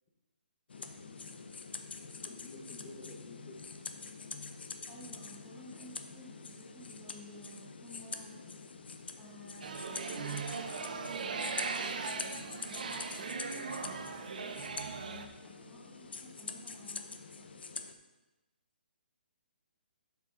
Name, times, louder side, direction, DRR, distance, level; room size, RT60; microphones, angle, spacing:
sound 1, 0.7-17.9, left 4 dB, 75° left, 0.8 m, -45 dB
voice 1, 0.8-3.6, left 3 dB, 25° left, 1 dB, 1.1 m, -52 dB
voice 2, 4.9-8.3 9.2-13.6 14.0-17.1 17.4-17.5, equal, ahead, -8 dB, 1.0 m, -53 dB
sound 2, 9.6-15.3, right 5 dB, 50° right, 0.8 m, -39 dB
7.4 x 7.2 x 3.8 m, 1.1 s
hypercardioid pair, 175°, 6 cm